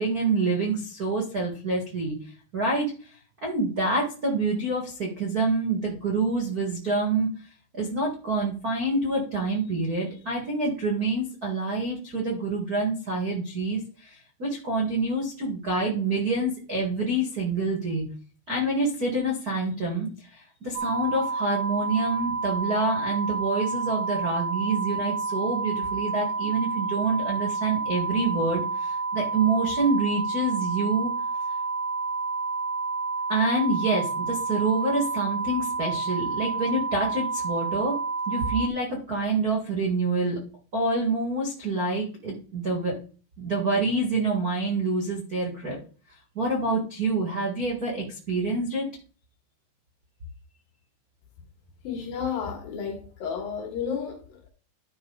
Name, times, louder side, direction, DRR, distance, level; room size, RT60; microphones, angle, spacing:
voice 1, 0.0-2.1 2.5-3.1 3.4-7.3 7.7-18.0 18.5-31.1 33.3-38.0 38.3-40.4 40.7-42.9 43.4-45.8 46.3-48.9, right 2 dB, 45° right, 1.2 m, -27 dB
sound 1, 20.7-38.7, right 4 dB, 85° right, 1.8 m, -29 dB
voice 2, 51.8-54.5, left 7 dB, 60° left, 3.0 m, -32 dB
12.0 x 4.7 x 4.0 m
omnidirectional pair, 5.1 m